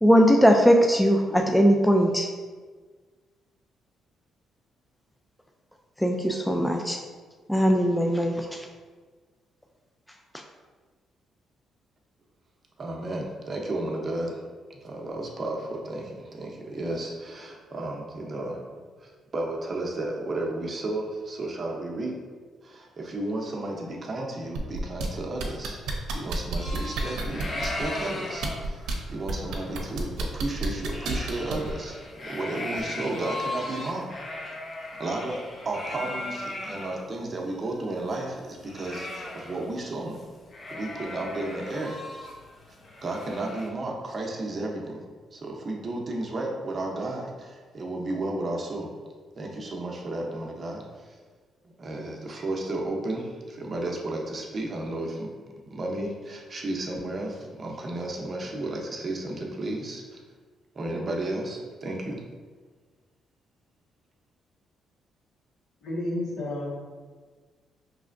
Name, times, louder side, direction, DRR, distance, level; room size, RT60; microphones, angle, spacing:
voice 1, 0.0-2.3 6.0-7.0 7.5-8.5, equal, 5° left, 2 dB, 0.3 m, -20 dB
voice 2, 12.8-14.4 14.7-18.6 19.0-22.2 22.6-25.8 26.1-32.0 32.2-34.1 35.0-40.2 40.7-42.0 43.0-49.0 49.4-51.2 51.6-55.3 55.6-60.2 60.7-62.2, right 2 dB, 40° right, 0 dB, 0.7 m, -33 dB
sound 1, 24.6-25.1 25.4-27.8 28.3-28.9 29.3-31.7 32.8-32.9, right 4 dB, 90° right, 0.6 m, -31 dB
sound 2, 26.6-37.0 37.4-37.5 37.7-39.8 40.1-40.2 40.5-43.7, left 1 dB, 40° left, 0.8 m, -37 dB
voice 3, 65.8-66.7, left 1 dB, 75° left, -6 dB, 1.5 m, -31 dB
4.8 x 3.2 x 2.5 m, 1.5 s
cardioid pair, 90°, 0 cm